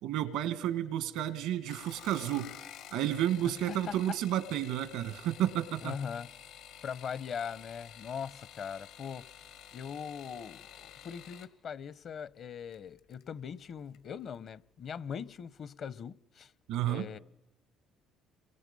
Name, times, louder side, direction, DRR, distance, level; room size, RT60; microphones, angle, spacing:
voice 1, 0.0-2.5 2.9-5.9 16.7-17.1, right 12 dB, 85° right, 1.8 m, -31 dB
sound 1, 1.6-11.5 12.7-13.2 13.6-14.1 14.3-14.4, left 10 dB, 85° left, 1.8 m, -51 dB
voice 2, 3.7-4.2 5.8-6.3 6.8-9.3 9.7-16.5 16.8-17.2, left 7 dB, 55° left, 0.8 m, -41 dB
27.5 x 24.0 x 5.5 m
supercardioid pair, 80°, 0 cm